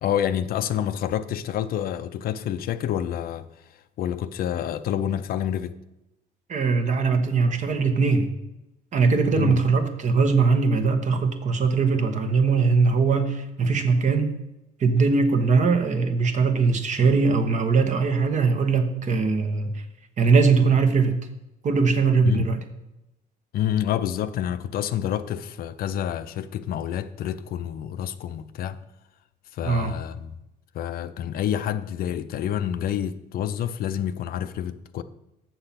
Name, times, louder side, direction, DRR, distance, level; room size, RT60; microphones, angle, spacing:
voice 1, 0.0-3.5 4.0-5.8 9.3-9.6 22.2-22.5 23.5-28.8 29.5-30.4 30.7-35.0, left 10 dB, 60° left, 0.5 m, -28 dB
voice 2, 6.5-8.3 8.9-14.3 14.8-19.7 20.2-21.1 21.6-22.6 29.6-29.9, right 4 dB, 45° right, 1.1 m, -21 dB
7.2 x 6.8 x 5.7 m
cardioid pair, 110°, 17 cm